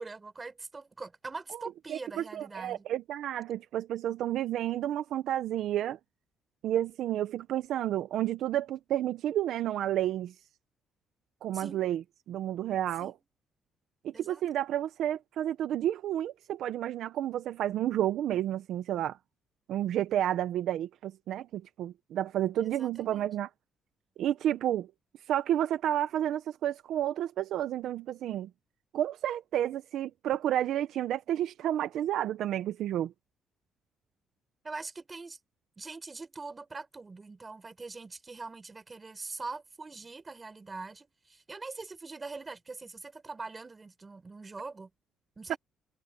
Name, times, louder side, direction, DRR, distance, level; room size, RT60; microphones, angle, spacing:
voice 1, 0.0-2.8 11.5-11.9 13.0-13.2 14.1-14.4 22.6-23.3 34.6-35.4 35.8-44.9 45.4-45.6, right 3 dB, 20° right, 4.4 m, -43 dB
voice 2, 1.5-6.0 6.6-10.3 11.4-12.0 12.3-13.1 14.0-19.2 19.7-23.5 24.2-24.9 25.3-28.5 28.9-33.1 45.5-45.6, right 11 dB, 70° right, 0.8 m, -31 dB
cardioid pair, 145°, 0 cm